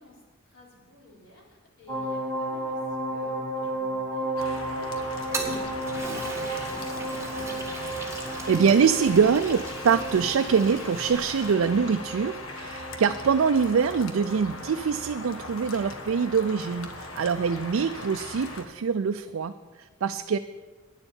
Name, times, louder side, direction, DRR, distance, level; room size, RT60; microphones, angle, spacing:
voice 1, 0.0-7.8 19.8-19.9, left 1 dB, 65° left, -3 dB, 3.9 m, -54 dB
sound 1, 1.9-17.4 17.8-17.9, right 1 dB, 20° left, 2.6 m, -34 dB
sound 2, 4.4-18.6, left 2 dB, 90° left, 1.2 m, -40 dB
Toilet flush, 5.1-11.5, right 2 dB, 15° right, 1.8 m, -38 dB
voice 2, 8.5-20.4, right 6 dB, 85° right, 8 dB, 0.4 m, -24 dB
9.9 x 7.1 x 8.8 m, 1.3 s
head